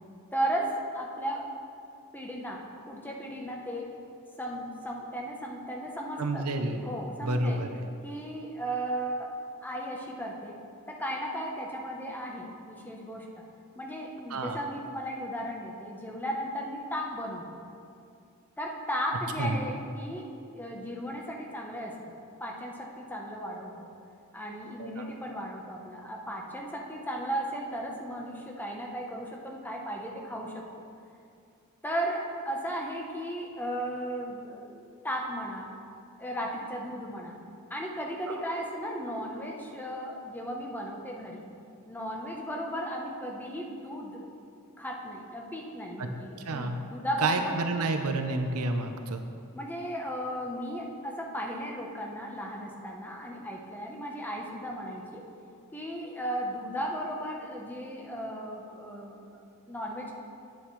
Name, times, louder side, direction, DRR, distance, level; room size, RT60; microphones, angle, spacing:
voice 1, 0.3-1.5 2.1-3.9 4.4-7.6 8.0-9.3 9.6-10.6 10.9-13.4 13.8-17.5 18.6-22.0 22.4-23.9 24.3-30.6 31.8-35.7 36.2-37.4 37.7-41.4 41.9-44.3 44.8-47.6 49.5-55.2 55.7-60.1, equal, 10° left, 0 dB, 0.8 m, -35 dB
voice 2, 6.2-6.8 7.2-7.7 14.3-14.6 19.4-19.6 24.8-25.1 38.3-38.4 46.0-46.1 46.4-46.8 47.2-49.2, right 2 dB, 80° right, 6 dB, 0.7 m, -29 dB
9.7 x 8.1 x 3.2 m, 2.5 s
head